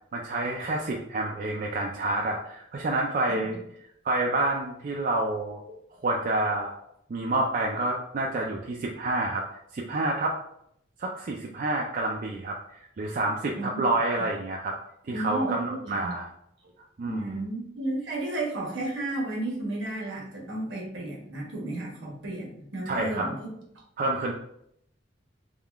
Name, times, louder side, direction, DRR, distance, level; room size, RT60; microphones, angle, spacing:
voice 1, 0.1-3.6 4.0-5.8 6.0-6.7 7.1-9.4 9.7-10.3 11.0-14.7 15.1-16.3 17.0-17.3 22.9-23.3 24.0-24.3, right 2 dB, 45° right, 0 dB, 0.4 m, -28 dB
voice 2, 15.1-16.1 17.0-23.5, right 2 dB, 75° right, -3 dB, 1.3 m, -33 dB
3.6 x 2.3 x 3.4 m, 0.73 s
head